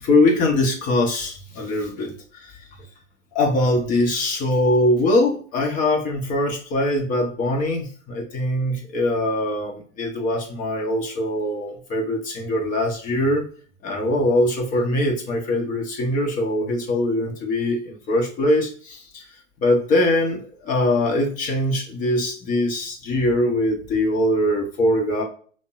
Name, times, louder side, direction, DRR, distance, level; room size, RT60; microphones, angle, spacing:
voice 1, 0.0-2.6 3.3-13.4 13.8-19.3 19.6-25.2, left 1 dB, 20° left, 2 dB, 0.7 m, -22 dB
5.1 x 2.0 x 2.4 m, 0.43 s
figure-of-eight pair, 110°, 36 cm